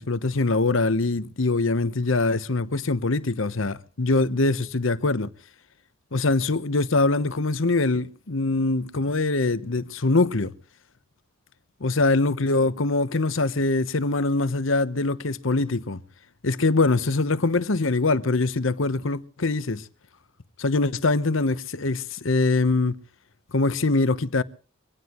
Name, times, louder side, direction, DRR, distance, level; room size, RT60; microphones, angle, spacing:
voice 1, 0.0-5.3 6.1-10.5 11.8-16.0 16.4-19.8 20.6-23.0 23.5-24.4, left 3 dB, 70° left, 1.0 m, -23 dB
24.5 x 17.5 x 3.1 m
head